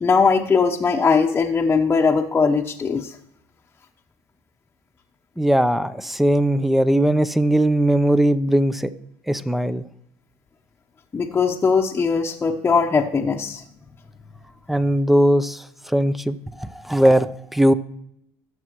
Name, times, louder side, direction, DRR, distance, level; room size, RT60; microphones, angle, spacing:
voice 1, 0.0-3.2 11.1-13.6, left 5 dB, 25° left, -1 dB, 1.0 m, -20 dB
voice 2, 5.4-8.9 9.3-9.8 14.7-17.7, right 1 dB, ahead, 14 dB, 0.7 m, -19 dB
19.0 x 7.3 x 3.1 m, 0.76 s
supercardioid pair, 90°, 8 cm